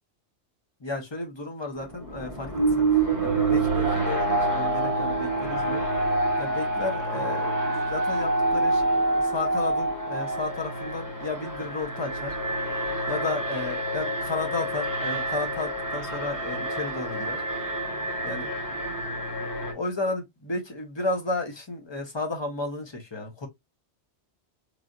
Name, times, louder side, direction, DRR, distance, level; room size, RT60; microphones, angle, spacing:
voice 1, 0.8-12.4 13.1-17.4 18.2-18.5 19.7-23.5, left 3 dB, 25° left, 0.8 m, -33 dB
Alarm, 1.8-19.7, right 2 dB, 20° right, 0.9 m, -27 dB
3.2 x 2.7 x 2.4 m
omnidirectional pair, 1.2 m